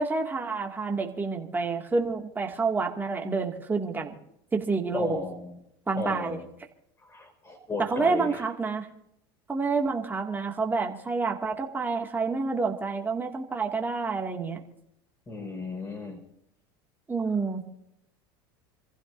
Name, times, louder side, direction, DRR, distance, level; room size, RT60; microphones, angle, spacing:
voice 1, 0.0-4.2 4.5-5.2 5.9-6.4 7.8-8.9 9.5-14.6 17.1-17.6, right 4 dB, 15° right, 1 dB, 2.2 m, -28 dB
voice 2, 4.9-5.6 6.0-6.5 7.0-8.4 15.3-16.2, left 3 dB, 20° left, 5 dB, 4.9 m, -35 dB
27.5 x 15.5 x 2.7 m, 0.78 s
supercardioid pair, 110°, 12 cm